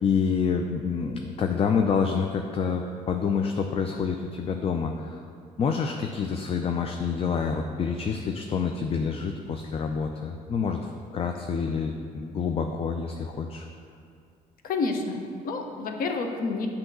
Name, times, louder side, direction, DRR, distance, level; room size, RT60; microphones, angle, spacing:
voice 1, 0.0-5.2 5.6-13.7, left 6 dB, 35° left, 4 dB, 0.4 m, -27 dB
voice 2, 14.6-16.7, left 3 dB, 55° left, 3 dB, 0.8 m, -29 dB
7.6 x 2.9 x 6.0 m, 2.3 s
hypercardioid pair, 65°, 17 cm